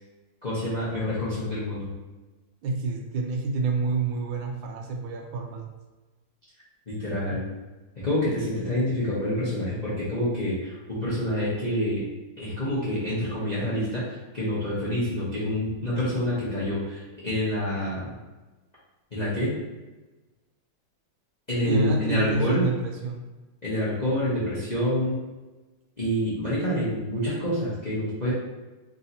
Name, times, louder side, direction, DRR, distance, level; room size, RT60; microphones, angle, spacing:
voice 1, 0.4-1.9 6.9-7.5 8.0-12.0 12.4-18.1 19.1-19.6 21.5-22.6 23.6-25.2 26.0-28.3, left 1 dB, 35° left, -9 dB, 0.7 m, -27 dB
voice 2, 2.6-5.7 21.6-23.3, right 3 dB, 80° right, 2 dB, 1.3 m, -28 dB
3.8 x 2.8 x 4.0 m, 1.2 s
omnidirectional pair, 2.2 m